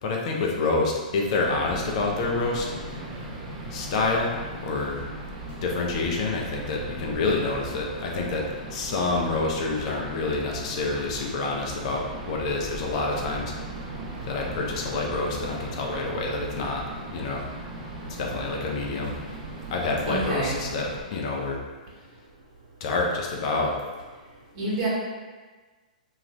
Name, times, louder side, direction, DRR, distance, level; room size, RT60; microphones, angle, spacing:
voice 1, 0.0-2.7 3.7-4.3 4.6-5.1 5.6-13.5 14.3-16.8 17.1-17.4 18.2-19.2 19.7-21.6 22.8-23.8, left 3 dB, 50° left, -1 dB, 0.5 m, -27 dB
sound 1, 1.4-21.0, right 2 dB, 25° right, 0.8 m, -38 dB
voice 2, 20.1-20.6 24.5-24.9, right 2 dB, 45° right, -6 dB, 1.1 m, -27 dB
2.5 x 2.3 x 3.1 m, 1.4 s
hypercardioid pair, 115°, 4 cm